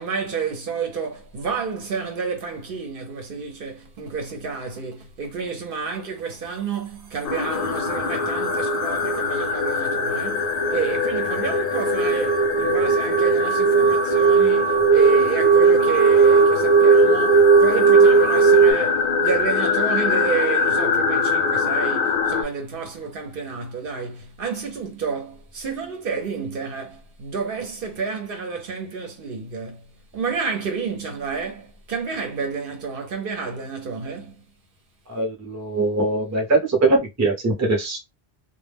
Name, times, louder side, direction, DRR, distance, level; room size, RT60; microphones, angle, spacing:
voice 1, 0.0-29.9 30.1-34.4, right 5 dB, 60° right, 0.8 m, -30 dB
sound 1, 7.2-22.4, left 4 dB, 60° left, 0.7 m, -23 dB
sound 2, 10.4-18.7, right 6 dB, 85° right, 0.9 m, -17 dB
voice 2, 35.1-38.0, right 2 dB, 20° right, 0.6 m, -21 dB
2.2 x 2.0 x 3.3 m
omnidirectional pair, 1.1 m